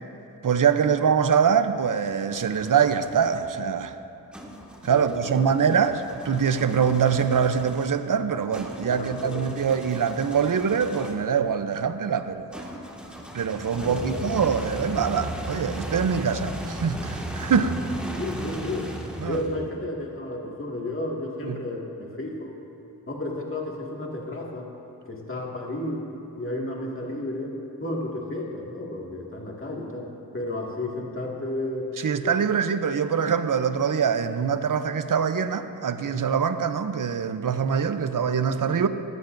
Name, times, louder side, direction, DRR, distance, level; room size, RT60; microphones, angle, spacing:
voice 1, 0.4-3.9 4.8-12.5 13.3-17.8 19.2-19.4 21.4-21.6 32.0-38.9, right 7 dB, 55° right, 10 dB, 0.7 m, -24 dB
sound 1, 1.6-3.4 4.3-11.3 12.5-19.8, right 1 dB, 5° right, 1.8 m, -36 dB
voice 2, 4.9-5.6 8.9-9.5 13.8-14.2 18.2-18.9 19.3-22.6 23.1-24.7 25.1-26.1 26.4-27.5 27.8-31.9 32.2-32.4, left 1 dB, 35° left, -2 dB, 2.1 m, -32 dB
19.0 x 14.5 x 2.6 m, 2.8 s
wide cardioid pair, 70°, 38 cm